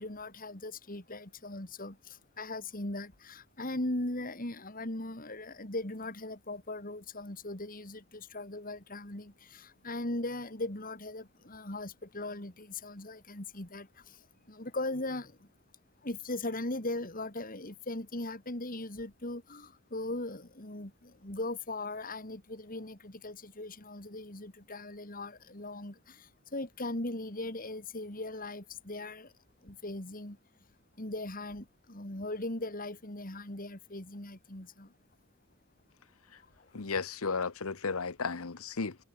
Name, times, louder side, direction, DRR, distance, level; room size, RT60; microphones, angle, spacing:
voice 1, 0.0-14.2 14.5-15.3 16.0-29.3 29.6-30.4 31.0-34.9, left 2 dB, 40° left, 3.1 m, -39 dB
voice 2, 36.7-39.0, left 4 dB, 75° left, 1.0 m, -34 dB
head